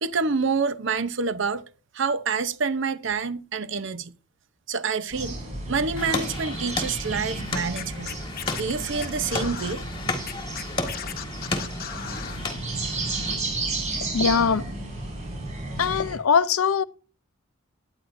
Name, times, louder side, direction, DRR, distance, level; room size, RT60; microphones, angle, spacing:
voice 1, 0.0-1.6 1.9-4.1 4.7-5.4 5.7-8.1 8.6-9.8, right 5 dB, 60° right, 0.7 m, -27 dB
sound 1, 5.1-16.2, right 2 dB, 35° right, 5.5 m, -33 dB
sound 2, 6.0-13.3, left 3 dB, 20° left, 1.7 m, -34 dB
Scratching (performance technique), 7.7-9.7 10.2-12.4, left 8 dB, 45° left, 0.9 m, -36 dB
voice 2, 14.1-14.7 15.8-16.8, left 6 dB, 90° left, 0.6 m, -21 dB
17.5 x 9.8 x 2.6 m
head